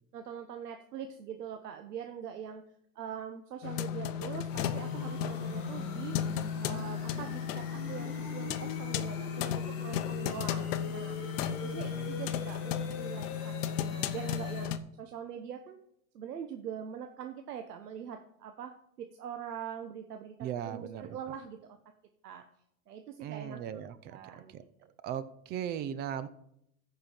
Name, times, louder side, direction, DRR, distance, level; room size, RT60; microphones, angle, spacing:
voice 1, 0.1-2.6 2.9-6.2 6.6-11.4 11.6-15.8 16.1-21.8 22.2-22.5 22.9-23.8 24.1-24.9, right 8 dB, 85° right, 6 dB, 1.0 m, -43 dB
sound 1, 3.6-14.8, left 9 dB, 55° left, 0.9 m, -35 dB
sound 2, 4.5-14.7, left 3 dB, 30° left, 3.8 m, -44 dB
voice 2, 11.4-12.1 20.4-21.2 23.2-24.2 24.5-24.6 25.0-26.3, right 9 dB, 20° right, 14 dB, 0.4 m, -38 dB
14.0 x 5.5 x 4.5 m, 0.74 s
hypercardioid pair, 120°, 46 cm